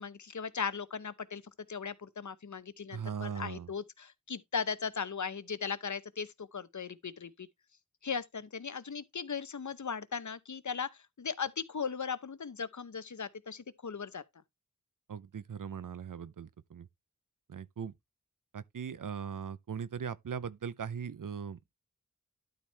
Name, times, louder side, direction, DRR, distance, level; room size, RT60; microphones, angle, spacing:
voice 1, 0.0-1.4 1.7-7.5 8.0-14.2, left 6 dB, 65° left, 0.9 m, -38 dB
voice 2, 2.9-3.7 15.1-16.9 17.5-17.9 18.5-21.7, right 7 dB, 80° right, 0.7 m, -39 dB
12.0 x 4.5 x 3.3 m
wide cardioid pair, 65°, 32 cm